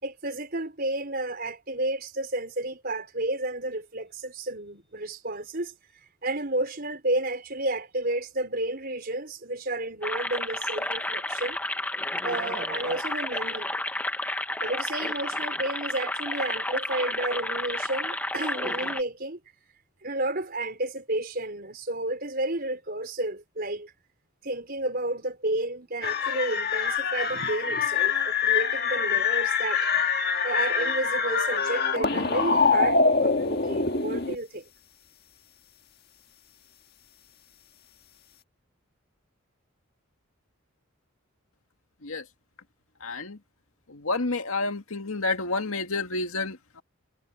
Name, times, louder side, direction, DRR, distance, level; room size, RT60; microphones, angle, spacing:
voice 1, 0.0-5.7 6.2-11.6 12.2-13.7 14.6-19.4 20.0-23.9 24.4-29.9 30.4-34.7, right 2 dB, 45° right, 5.0 m, -31 dB
sound 1, 10.0-19.0, left 1 dB, 10° left, 1.2 m, -31 dB
sound 2, 26.0-34.4, left 5 dB, 50° left, 1.8 m, -25 dB
voice 2, 43.0-43.4 43.9-46.8, left 3 dB, 80° left, 2.0 m, -29 dB
head